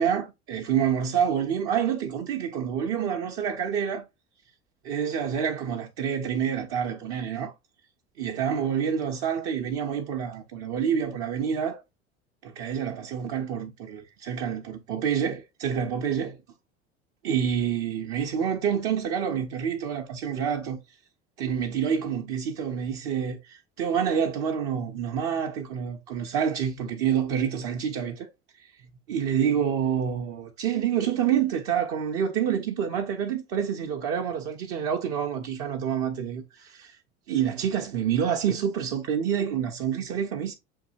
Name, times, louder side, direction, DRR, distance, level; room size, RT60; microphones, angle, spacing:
voice 1, 0.0-4.1 4.8-7.5 8.2-11.8 12.4-16.4 17.2-20.8 21.4-28.3 29.1-37.0 37.3-40.5, right 8 dB, 50° right, 0.7 m, -27 dB
7.2 x 2.7 x 2.5 m
figure-of-eight pair, 70°, 34 cm